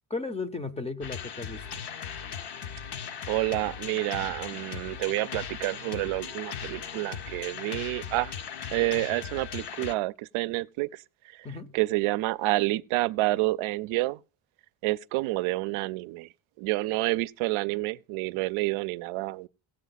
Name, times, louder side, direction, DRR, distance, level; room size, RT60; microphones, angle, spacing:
voice 1, 0.1-1.8 11.4-11.8, left 3 dB, 15° left, 0.5 m, -35 dB
sound 1, 1.0-9.9, left 7 dB, 55° left, 0.8 m, -38 dB
voice 2, 3.3-8.3 8.7-11.0 11.3-11.5 11.7-14.2 14.8-16.3 16.6-19.5, right 19 dB, 85° right, 0.5 m, -29 dB
16.0 x 7.8 x 4.0 m
cardioid pair, 140°, 48 cm